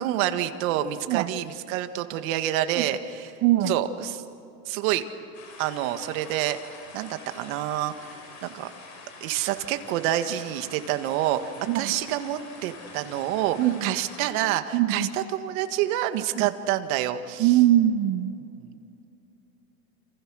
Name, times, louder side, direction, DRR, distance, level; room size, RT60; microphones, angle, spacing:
voice 1, 0.0-3.3 3.6-4.2 4.7-5.0 5.6-6.6 6.9-8.7 9.2-11.4 11.7-17.5 18.6-18.7, right 12 dB, 55° right, 8 dB, 1.8 m, -28 dB
voice 2, 3.4-3.7 11.7-11.9 13.6-13.9 14.7-15.1 16.4-16.5 17.4-18.3, right 13 dB, 25° right, 14 dB, 0.6 m, -22 dB
sound 1, 5.3-14.3, left 3 dB, 35° left, 5.9 m, -46 dB
29.0 x 28.0 x 6.4 m, 2.6 s
supercardioid pair, 155°, 49 cm